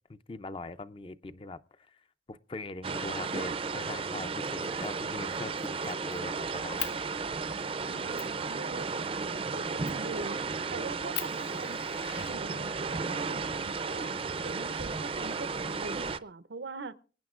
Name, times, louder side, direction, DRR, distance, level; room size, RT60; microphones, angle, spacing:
voice 1, 0.1-2.0 2.3-7.0, left 2 dB, 30° left, 13 dB, 0.5 m, -41 dB
sound 1, 2.8-16.2, right 4 dB, 30° right, 0.4 m, -34 dB
Fire, 4.6-4.9 5.3-6.2 6.8-7.0 7.6-7.7 8.2-8.4 9.8-10.1 10.6-10.7 11.1-12.9 14.0-14.9, left 11 dB, 85° left, 0.7 m, -41 dB
voice 2, 7.8-10.4 10.7-14.1 14.4-17.0, right 3 dB, 90° right, 13 dB, 0.7 m, -43 dB
24.0 x 9.6 x 2.4 m, 0.38 s
head